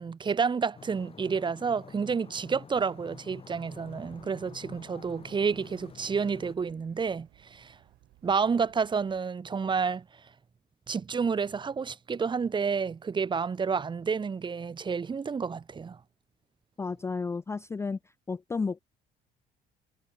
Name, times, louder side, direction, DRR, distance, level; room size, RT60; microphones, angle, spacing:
voice 1, 0.0-7.7 8.2-10.0 10.9-16.0, right 5 dB, 25° right, 1.2 m, -30 dB
sound 1, 0.7-6.5, left 6 dB, 35° left, 4.4 m, -49 dB
sound 2, 3.7-9.2, right 18 dB, 85° right, 4.7 m, -62 dB
voice 2, 16.8-18.0 18.3-18.8, left 4 dB, 15° left, 0.4 m, -32 dB
cardioid pair, 110°, 17 cm